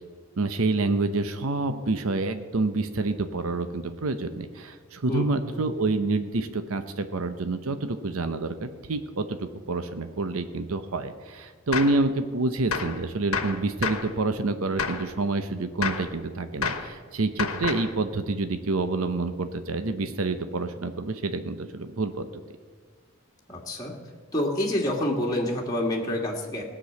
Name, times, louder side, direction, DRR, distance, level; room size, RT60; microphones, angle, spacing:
voice 1, 0.4-22.3, right 3 dB, 80° right, 9 dB, 0.8 m, -28 dB
voice 2, 5.1-5.6 23.5-23.9 24.3-26.6, left 1 dB, 15° left, -2 dB, 1.7 m, -28 dB
Gunshot gunfire, 11.7-12.0 12.7-13.0 13.3-14.1 14.8-15.1 15.8-16.1 16.6-16.9 17.4-17.9, left 5 dB, 85° left, 1.2 m, -29 dB
17.5 x 6.2 x 8.3 m, 1.5 s
head